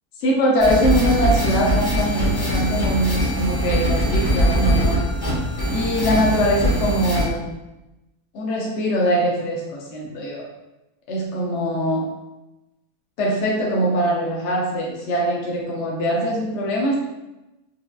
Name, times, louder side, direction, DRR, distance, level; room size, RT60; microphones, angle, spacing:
voice 1, 0.2-5.1 5.7-7.5 8.3-10.5 11.1-12.1 13.2-17.0, equal, 65° left, -3 dB, 0.7 m, -22 dB
sound 1, 0.6-7.2, equal, 35° left, 1.1 m, -21 dB
4.5 x 2.3 x 2.3 m, 1.0 s
omnidirectional pair, 1.6 m